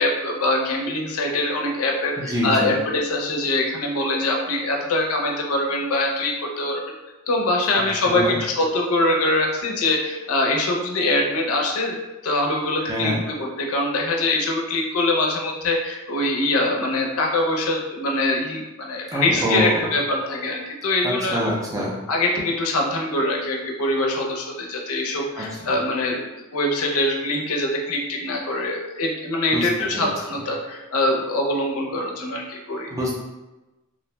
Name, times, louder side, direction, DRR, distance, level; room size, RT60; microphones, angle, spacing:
voice 1, 0.0-6.8 7.3-12.0 12.2-21.5 22.1-32.9, left 2 dB, 75° left, 0 dB, 0.5 m, -23 dB
voice 2, 2.2-2.8 8.1-8.4 12.8-13.2 19.1-19.9 21.0-22.0 25.4-25.8 29.5-29.7 29.9-30.1 32.9-33.1, equal, 15° right, -3 dB, 0.4 m, -25 dB
2.5 x 2.1 x 3.0 m, 1.1 s
head